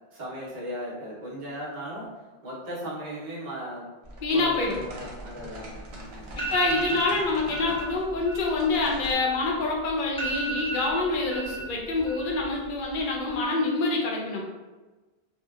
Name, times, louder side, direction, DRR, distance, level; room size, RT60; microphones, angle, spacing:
voice 1, 0.1-3.9 4.3-6.5, equal, 50° right, -6 dB, 0.8 m, -37 dB
sound 1, 4.0-9.1, right 1 dB, 90° right, 0.9 m, -42 dB
voice 2, 4.2-4.8 6.5-14.4, left 3 dB, 60° left, -1 dB, 0.7 m, -26 dB
sound 2, 5.9-6.0 6.3-7.1 7.5-7.8 8.1-9.6 9.9-10.0 10.2-11.6 11.9-12.5 12.8-13.3, right 2 dB, 5° left, 0.5 m, -33 dB
2.7 x 2.1 x 2.3 m, 1.2 s
omnidirectional pair, 1.0 m